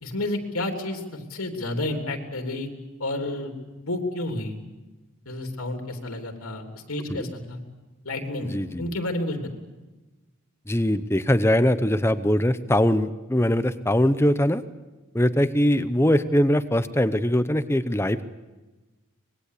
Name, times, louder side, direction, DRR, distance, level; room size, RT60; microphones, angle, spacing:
voice 1, 0.0-1.0 1.3-2.7 3.0-3.5 3.9-4.6 5.2-7.6 8.0-9.5, left 1 dB, 90° left, 4 dB, 3.3 m, -30 dB
voice 2, 8.4-8.9 10.7-14.6 15.1-18.2, equal, 10° left, 12 dB, 0.8 m, -22 dB
25.0 x 21.0 x 8.4 m, 1.2 s
head